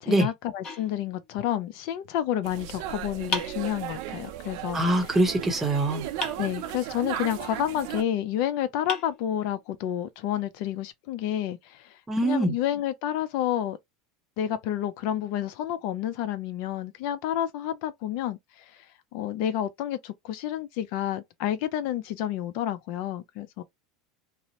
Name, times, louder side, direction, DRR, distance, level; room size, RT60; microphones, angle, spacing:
voice 1, 0.0-5.1 6.4-13.8 14.4-18.9 19.1-23.6, left 11 dB, 60° left, 0.4 m, -30 dB
sound 1, 0.6-1.7 3.3-4.3 6.2-7.1 8.3-8.4 8.9-9.9, left 3 dB, 30° left, 0.8 m, -37 dB
sound 2, 2.4-8.0, right 11 dB, 65° right, 0.4 m, -36 dB
voice 2, 4.7-6.1 12.1-12.5, right 1 dB, 10° right, 0.8 m, -23 dB
2.6 x 2.0 x 2.8 m
supercardioid pair, 130°, 2 cm